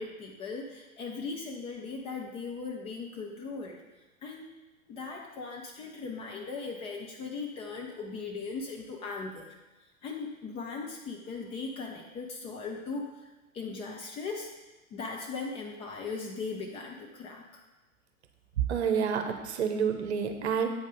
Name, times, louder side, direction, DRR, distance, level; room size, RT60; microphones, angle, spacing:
voice 1, 0.0-4.5 4.9-9.6 10.0-13.3 13.5-14.5 14.9-17.6, left 4 dB, 15° left, 0 dB, 0.5 m, -38 dB
voice 2, 18.7-20.7, right 7 dB, 50° right, 6 dB, 1.0 m, -29 dB
8.6 x 5.2 x 5.2 m, 1.1 s
figure-of-eight pair, 105°, 42 cm